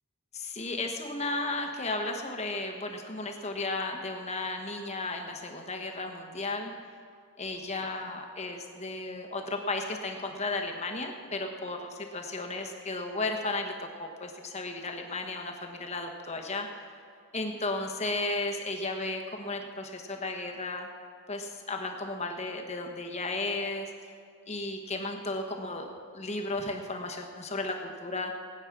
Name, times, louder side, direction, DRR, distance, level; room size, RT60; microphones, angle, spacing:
voice 1, 0.3-6.7 7.4-13.7 14.0-16.7 17.3-20.9 21.3-23.9 24.5-25.9 26.1-28.3, left 2 dB, 30° left, 3 dB, 1.1 m, -34 dB
19.5 x 9.0 x 6.0 m, 2.2 s
head